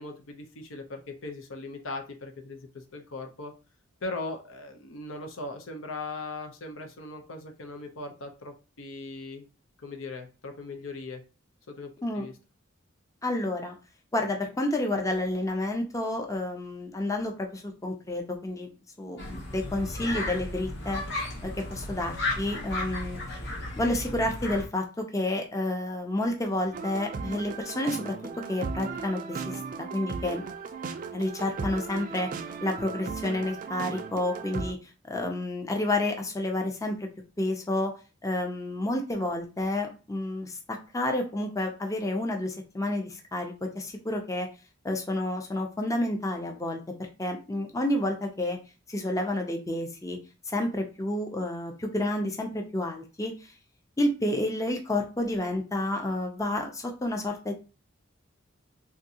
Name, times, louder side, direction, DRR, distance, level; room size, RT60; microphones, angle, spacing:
voice 1, 0.0-3.5 4.0-9.4 9.8-11.2 11.7-12.3, left 2 dB, 80° left, 4 dB, 0.7 m, -39 dB
voice 2, 13.2-13.7 14.1-18.7 19.0-21.0 21.4-23.2 23.8-28.1 28.5-30.4 31.1-37.1 37.4-37.9 38.2-44.5 44.8-48.6 48.9-50.2 50.5-53.5 54.0-57.5, left 1 dB, 15° left, 3 dB, 0.5 m, -30 dB
sound 1, 19.2-24.7, left 2 dB, 60° left, 1.0 m, -34 dB
sound 2, 26.7-34.7, right 5 dB, 40° right, 0.3 m, -36 dB
3.6 x 2.6 x 2.8 m, 0.32 s
head